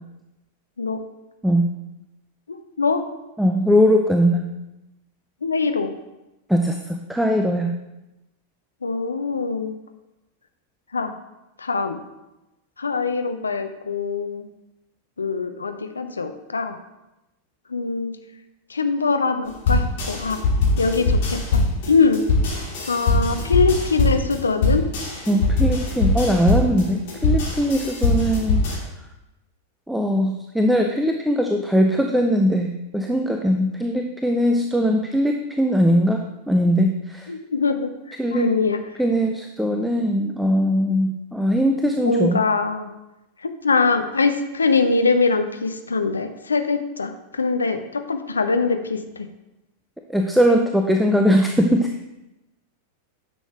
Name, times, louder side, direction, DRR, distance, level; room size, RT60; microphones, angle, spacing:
voice 1, 2.5-3.0 5.4-5.9 8.8-9.8 10.9-11.1 11.6-12.0 12.8-14.4 15.2-16.7 17.7-18.1 18.7-20.4 20.8-21.6 21.9-22.2 22.9-24.8 37.3-38.8 41.8-42.9 43.4-49.3, left 4 dB, 75° left, 8 dB, 0.6 m, -23 dB
voice 2, 3.4-4.4 6.5-7.8 25.3-28.9 29.9-37.3 38.2-38.5 39.0-42.4 50.1-51.9, equal, ahead, 4 dB, 0.5 m, -20 dB
sound 1, 19.6-28.8, left 3 dB, 50° left, 2.5 m, -21 dB
9.9 x 6.3 x 3.5 m, 0.98 s
figure-of-eight pair, 90°, 0 cm